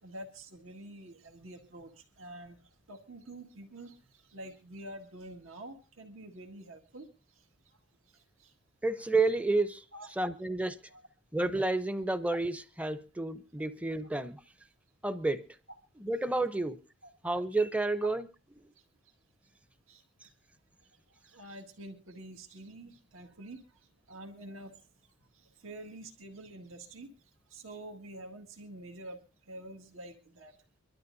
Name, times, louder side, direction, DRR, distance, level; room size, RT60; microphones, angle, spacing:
voice 1, 0.0-2.6 2.9-7.1 8.1-8.5 9.9-10.1 10.9-11.0 17.0-17.1 19.9-20.0 21.1-23.6 24.1-24.7 25.3-27.1 27.5-29.2 29.5-30.6, right 1 dB, 85° right, 1.8 m, -47 dB
voice 2, 8.8-9.8 10.2-10.8 11.3-14.4 15.0-15.5 16.0-16.8 17.2-18.3, right 2 dB, 5° right, 0.6 m, -30 dB
24.5 x 12.5 x 2.6 m
head